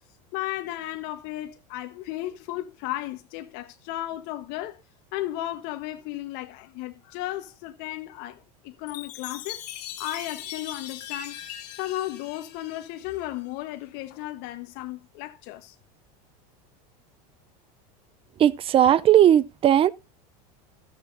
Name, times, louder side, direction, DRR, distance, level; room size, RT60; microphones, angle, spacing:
voice 1, 0.3-4.8 5.1-9.6 10.0-11.4 11.8-15.7, left 15 dB, 60° left, 1.3 m, -34 dB
Chime, 8.9-13.5, left 10 dB, 80° left, 1.8 m, -40 dB
voice 2, 18.4-19.9, right 10 dB, 30° right, 0.6 m, -17 dB
14.5 x 7.2 x 2.7 m
supercardioid pair, 120°, 20 cm